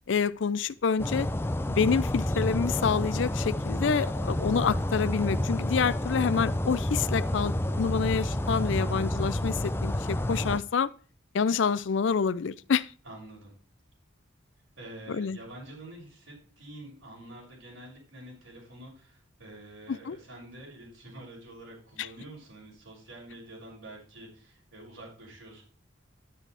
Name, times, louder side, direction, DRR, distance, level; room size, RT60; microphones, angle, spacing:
voice 1, 0.1-1.3 1.7-10.9 11.3-12.9 15.1-15.4 19.9-20.2 22.0-22.1, left 6 dB, 70° left, 0.4 m, -27 dB
sound 1, 1.0-10.6, left 1 dB, 10° left, 0.4 m, -29 dB
voice 2, 8.7-9.3 13.0-13.5 14.8-25.6, right 1 dB, 85° right, 6.1 m, -47 dB
9.9 x 9.9 x 3.4 m
head